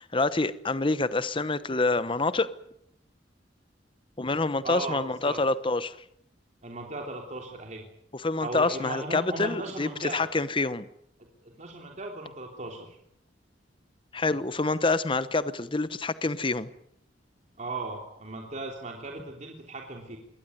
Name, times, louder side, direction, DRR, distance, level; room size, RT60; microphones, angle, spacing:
voice 1, 0.0-2.5 4.2-6.0 8.1-10.9 14.1-16.7, left 3 dB, 30° left, 15 dB, 0.9 m, -27 dB
voice 2, 4.6-5.0 5.2-5.4 6.6-7.9 8.4-10.3 11.4-13.0 17.6-20.2, right 2 dB, 40° right, 1 dB, 3.2 m, -37 dB
22.5 x 18.0 x 9.4 m, 0.73 s
head